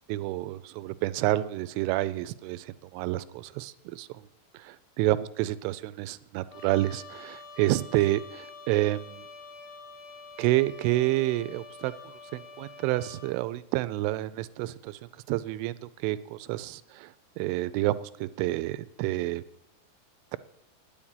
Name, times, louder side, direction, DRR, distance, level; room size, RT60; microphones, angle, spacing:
voice 1, 0.1-4.2 4.5-9.2 10.4-11.9 12.3-15.0 15.3-15.7 16.0-19.4, right 16 dB, 85° right, 15 dB, 3.0 m, -29 dB
Trumpet, 6.5-13.4, left 4 dB, 70° left, 1.3 m, -47 dB
10.0 x 8.6 x 9.0 m, 0.76 s
omnidirectional pair, 5.6 m